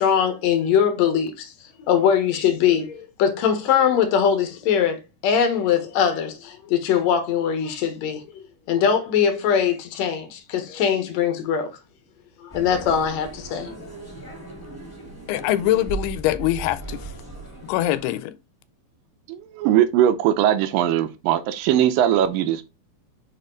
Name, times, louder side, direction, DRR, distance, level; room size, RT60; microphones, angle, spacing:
voice 1, 0.0-1.5 1.9-11.7 12.4-13.7, left 8 dB, 65° left, 1.9 m, -22 dB
sound 1, 12.5-18.2, right 3 dB, 5° left, 1.4 m, -37 dB
voice 2, 15.3-17.1 17.6-18.3, left 14 dB, 90° left, 2.5 m, -23 dB
voice 3, 19.3-22.6, right 11 dB, 80° right, 2.1 m, -20 dB
6.6 x 4.3 x 3.8 m
omnidirectional pair, 4.4 m